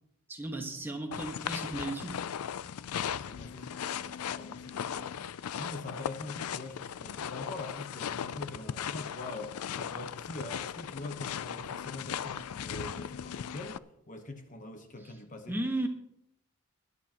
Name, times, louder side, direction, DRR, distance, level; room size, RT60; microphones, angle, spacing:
voice 1, 0.3-2.4 15.0-15.1 15.5-15.9, right 1 dB, 10° right, 3 dB, 1.3 m, -35 dB
sound 1, 1.1-13.8, left 8 dB, 85° left, 0.4 m, -38 dB
voice 2, 3.1-5.2 5.6-15.6, left 2 dB, 35° left, 6 dB, 1.0 m, -44 dB
21.0 x 11.0 x 2.9 m, 0.76 s
head